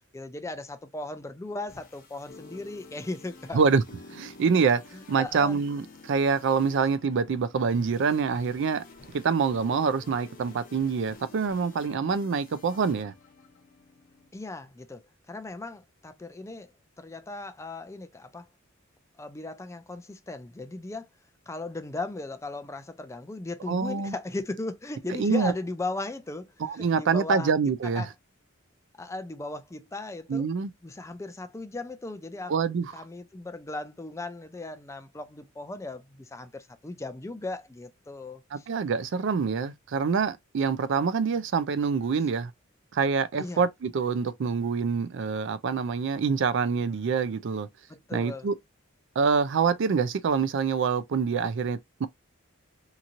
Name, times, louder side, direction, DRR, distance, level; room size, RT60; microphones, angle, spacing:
voice 1, 0.1-3.6 5.2-5.6 14.3-16.7 17.0-18.5 19.2-21.1 21.5-27.5 27.9-28.1 29.0-30.5 30.8-32.5 32.9-38.7 43.4-43.6 47.9-48.5, left 2 dB, 15° left, 0.4 m, -37 dB
sound 1, 1.5-14.3, left 3 dB, 45° left, 0.7 m, -50 dB
voice 2, 4.1-4.8 5.1-8.8 9.1-13.1 23.7-24.1 25.2-25.5 26.6-28.0 30.3-30.7 32.5-32.9 38.5-42.5 42.9-47.7 48.1-48.5 49.2-52.1, right 5 dB, 60° right, 0.4 m, -26 dB
2.9 x 2.6 x 2.5 m
head